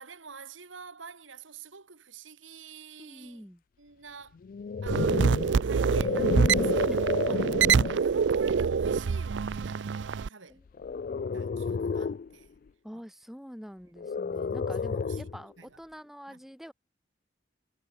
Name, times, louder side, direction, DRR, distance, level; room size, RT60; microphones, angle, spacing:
voice 1, 0.0-3.5 3.8-4.4 4.8-5.3 5.6-7.5 7.7-10.6 11.3-12.5 12.9-13.0 14.4-15.3 15.6-15.8 16.3-16.4, right 5 dB, 90° right, 2.2 m, -48 dB
voice 2, 3.0-3.6 6.9-7.2 10.5-10.6 10.9-11.5 12.8-16.7, equal, ahead, 3.8 m, -46 dB
sound 1, 4.4-8.1 8.7-9.0 10.8-12.3 14.0-15.4, left 5 dB, 45° left, 0.3 m, -31 dB
sound 2, 4.9-10.3, right 6 dB, 70° right, 0.4 m, -25 dB
head